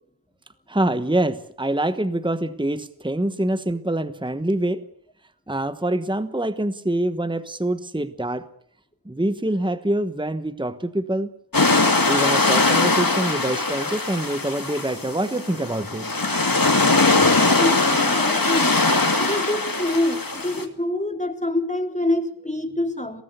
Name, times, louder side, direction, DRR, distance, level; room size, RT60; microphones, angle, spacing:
voice 1, 0.7-4.8 5.5-8.5 9.0-11.3 12.1-16.0, right 1 dB, 10° right, 12 dB, 1.2 m, -25 dB
sound 1, 11.5-20.6, left 3 dB, 60° left, 2.7 m, -21 dB
voice 2, 17.2-18.8 19.2-23.2, left 1 dB, 20° left, 6 dB, 3.4 m, -26 dB
22.5 x 18.0 x 8.2 m, 0.66 s
wide cardioid pair, 45°, 38 cm